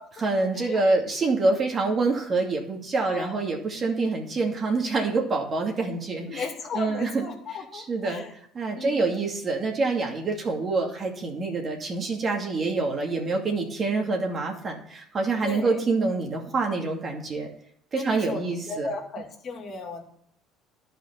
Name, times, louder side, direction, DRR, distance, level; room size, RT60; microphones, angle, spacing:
voice 1, 0.2-6.5 6.7-8.2 8.5-17.5 17.9-18.9, right 3 dB, 40° right, 1 dB, 2.5 m, -26 dB
voice 2, 3.0-3.4 6.3-8.3 8.7-9.1 15.4-15.8 17.9-20.0, left 4 dB, 50° left, 2 dB, 2.4 m, -35 dB
11.0 x 5.2 x 6.8 m, 0.67 s
supercardioid pair, 85°, 0 cm